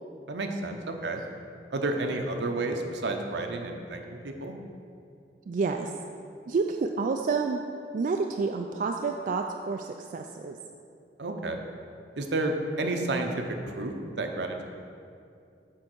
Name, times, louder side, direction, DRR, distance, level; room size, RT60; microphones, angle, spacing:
voice 1, 0.3-1.2 1.7-4.5 11.2-11.6 12.2-13.3 13.8-14.6, right 2 dB, 75° right, 4 dB, 0.7 m, -31 dB
voice 2, 5.5-5.9 6.5-7.6 7.9-10.6, right 4 dB, 45° right, 4 dB, 0.3 m, -29 dB
7.5 x 4.6 x 6.2 m, 2.4 s
head